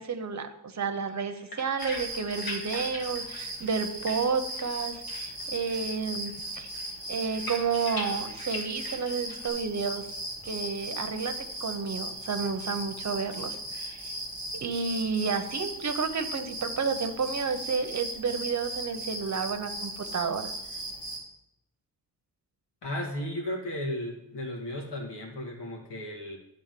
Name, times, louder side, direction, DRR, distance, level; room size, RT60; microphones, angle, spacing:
voice 1, 0.0-6.7 7.1-10.0 10.4-11.3 11.6-14.2 14.6-20.5, right 5 dB, 40° right, 8 dB, 1.0 m, -31 dB
sound 1, 1.1-4.8 5.1-5.9 6.2-9.5, left 2 dB, 60° left, 1.7 m, -42 dB
sound 2, 1.8-21.2, right 1 dB, 20° left, 3.1 m, -37 dB
voice 2, 22.8-26.4, left 1 dB, 80° left, 1 dB, 1.9 m, -35 dB
11.0 x 3.8 x 7.7 m, 0.83 s
wide cardioid pair, 110°, 41 cm